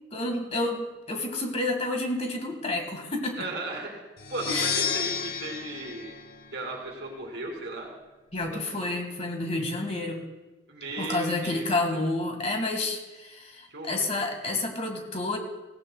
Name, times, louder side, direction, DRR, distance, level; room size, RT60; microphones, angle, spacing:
voice 1, 0.1-3.5 4.5-4.8 8.3-10.3 11.0-15.4, left 2 dB, 35° left, 4 dB, 1.8 m, -30 dB
voice 2, 3.4-4.0 4.3-6.1 6.5-7.9 8.5-8.9 10.7-12.0 13.7-14.3, right 2 dB, 70° right, 0 dB, 2.6 m, -36 dB
sound 1, 4.2-7.0, left 7 dB, 55° left, 0.8 m, -32 dB
17.5 x 16.5 x 2.3 m, 1.1 s
head